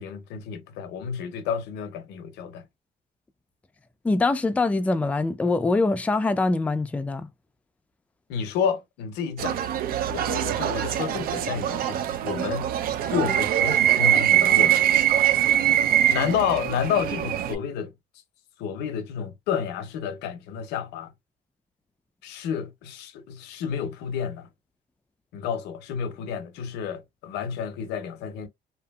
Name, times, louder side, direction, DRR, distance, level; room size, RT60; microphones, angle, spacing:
voice 1, 0.0-2.6 8.3-9.6 10.1-12.7 13.1-15.0 16.1-17.9 18.6-21.1 22.2-24.5 25.3-28.5, left 7 dB, 90° left, 0.6 m, -30 dB
voice 2, 4.0-7.3, left 3 dB, 10° left, 0.3 m, -23 dB
sound 1, 9.4-17.5, right 11 dB, 60° right, 0.4 m, -23 dB
2.7 x 2.6 x 2.3 m
cardioid pair, 110°, 17 cm